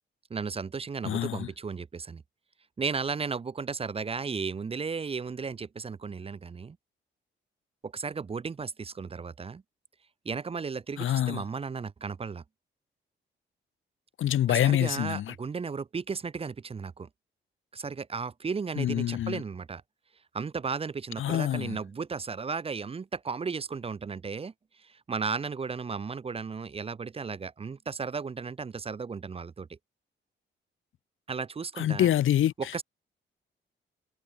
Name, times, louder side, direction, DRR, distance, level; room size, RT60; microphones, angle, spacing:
voice 1, 0.3-2.2 2.8-6.8 7.8-9.6 10.2-12.4 14.5-17.1 17.7-19.8 20.3-24.5 24.8-29.8 31.3-32.1 32.6-32.8, right 5 dB, 30° right, 0.7 m, -35 dB
voice 2, 1.0-1.5 11.0-11.4 14.2-15.3 18.8-19.4 21.2-21.8 31.8-32.5, left 12 dB, 80° left, 1.4 m, -26 dB
cardioid pair, 115°, 20 cm